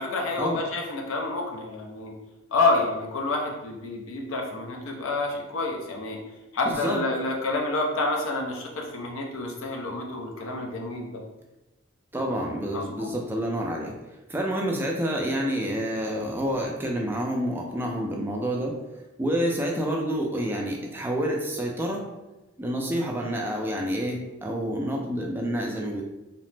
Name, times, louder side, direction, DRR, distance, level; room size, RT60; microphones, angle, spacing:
voice 1, 0.0-2.1 2.5-6.2 6.5-11.2 12.7-13.1, left 2 dB, 75° left, 1 dB, 0.5 m, -28 dB
voice 2, 6.6-7.0 12.1-13.9 14.3-18.8 19.2-22.0 22.6-26.0, equal, 10° right, -1 dB, 0.3 m, -28 dB
2.8 x 2.0 x 3.2 m, 1.0 s
head